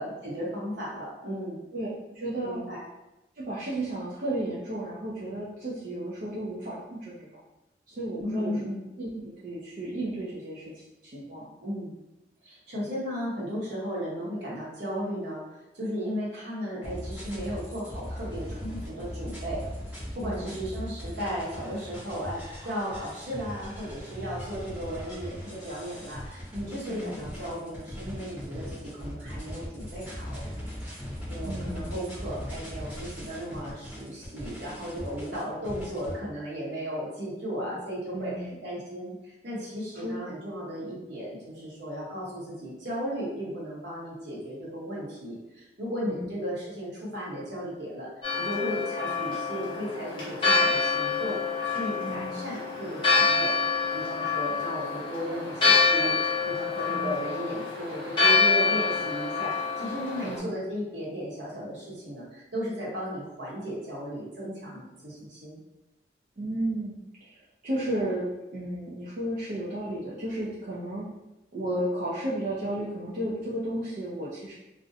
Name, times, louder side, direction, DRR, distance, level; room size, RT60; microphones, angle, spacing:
voice 1, 0.0-1.6 2.4-2.8 8.2-8.8 11.6-11.9 12.4-15.4 15.7-19.6 20.1-30.4 31.3-48.1 48.3-51.4 51.6-53.6 53.9-65.6, equal, 70° right, -6 dB, 0.9 m, -35 dB
voice 2, 1.7-2.6 3.4-7.4 7.9-8.6 9.0-11.5 20.3-20.6 26.9-27.2 31.4-31.9 37.6-37.7 38.1-38.6 40.0-40.1 46.1-46.3 52.0-52.4 56.9-57.2 60.2-60.6 66.4-67.0 67.2-67.3 67.6-71.1 71.5-74.5, right 1 dB, 45° right, -8 dB, 0.4 m, -33 dB
sound 1, 16.8-36.1, equal, 10° right, 0.7 m, -39 dB
Church bell, 48.2-60.4, left 4 dB, 25° left, 0.7 m, -26 dB
2.4 x 2.1 x 2.6 m, 0.97 s
head